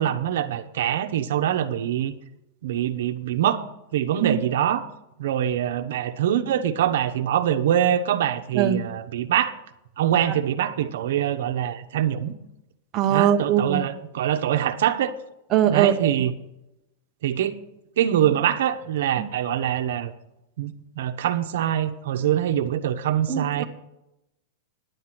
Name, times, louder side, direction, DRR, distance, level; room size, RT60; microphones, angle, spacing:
voice 1, 0.0-2.2 2.6-3.6 3.9-4.9 5.2-9.5 10.0-12.3 13.1-15.1 15.7-16.3 17.2-17.6 18.0-20.1 20.6-23.6, right 10 dB, 75° right, 7 dB, 0.9 m, -24 dB
voice 2, 12.9-13.8 15.5-16.2 19.2-19.3 23.3-23.6, right 10 dB, 25° right, 4 dB, 0.8 m, -21 dB
10.5 x 8.1 x 6.0 m, 0.88 s
supercardioid pair, 160°, 0 cm